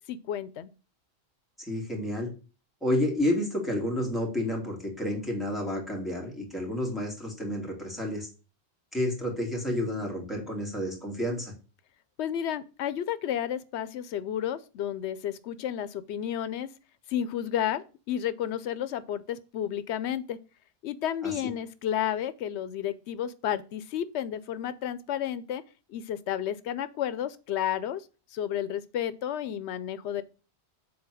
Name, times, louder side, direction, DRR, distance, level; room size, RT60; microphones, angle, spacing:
voice 1, 0.1-0.7 12.2-16.7 17.1-20.4 20.8-25.6 25.9-28.1 28.3-30.2, left 10 dB, 90° left, 0.9 m, -32 dB
voice 2, 1.6-2.3 2.8-8.3 8.9-11.5 21.2-21.3, left 1 dB, ahead, 2.7 m, -30 dB
7.1 x 4.1 x 6.3 m
omnidirectional pair, 1.1 m